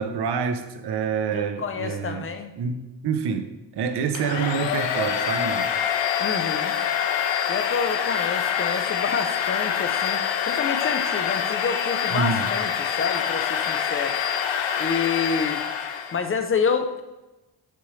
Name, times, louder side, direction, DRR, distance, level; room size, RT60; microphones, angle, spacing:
voice 1, 0.0-2.3 2.6-5.7 12.1-12.5, right 6 dB, 60° right, 0.7 m, -27 dB
voice 2, 1.3-2.5 6.2-6.7 7.5-14.1 14.8-15.6 16.1-17.0, left 5 dB, 30° left, 0.5 m, -28 dB
Domestic sounds home sounds, 4.1-16.2, left 8 dB, 80° left, 0.7 m, -25 dB
6.8 x 6.0 x 3.2 m
wide cardioid pair, 155°, 43 cm